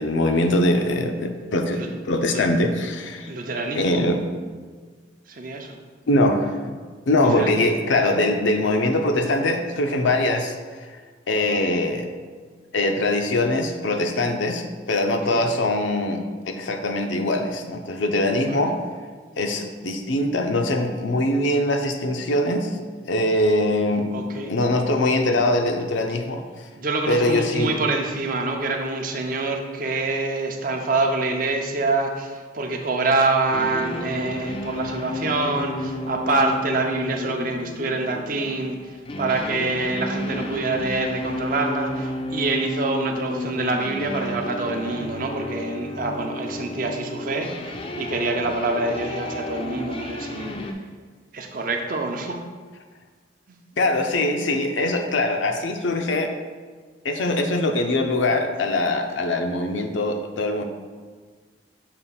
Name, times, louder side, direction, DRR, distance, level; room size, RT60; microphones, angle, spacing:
voice 1, 0.0-3.3 3.7-4.2 6.1-6.6 7.1-10.6 10.9-11.0 11.3-12.1 12.7-16.2 16.5-18.8 19.4-22.8 23.1-24.1 24.5-26.4 27.1-27.8 53.8-56.3 57.0-60.6, left 1 dB, 80° left, 4 dB, 0.6 m, -22 dB
voice 2, 3.3-4.0 5.3-5.8 7.2-7.6 15.1-15.5 18.5-18.7 24.1-24.5 26.8-50.5 51.3-52.4, right 3 dB, 45° right, 3 dB, 0.5 m, -26 dB
sound 1, 33.5-50.7, left 1 dB, 30° left, 0.4 m, -32 dB
6.8 x 2.5 x 5.5 m, 1.5 s
head